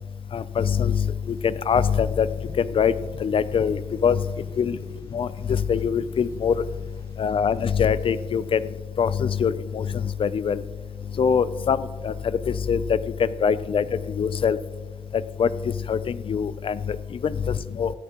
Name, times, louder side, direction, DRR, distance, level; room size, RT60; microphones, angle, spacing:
voice 1, 0.3-1.1 1.4-2.3 2.6-2.9 3.2-4.2 4.6-4.8 5.1-6.5 7.2-8.6 9.0-10.6 11.2-12.1 12.5-13.8 14.2-14.6 15.4-15.5 15.9-16.0 16.3-17.0 17.2-17.9, left 7 dB, 50° left, 16 dB, 0.4 m, -23 dB
sound 1, 1.2-8.7, left 2 dB, 25° left, 0.8 m, -48 dB
13.5 x 12.5 x 3.0 m, 1.4 s
wide cardioid pair, 145°, 12 cm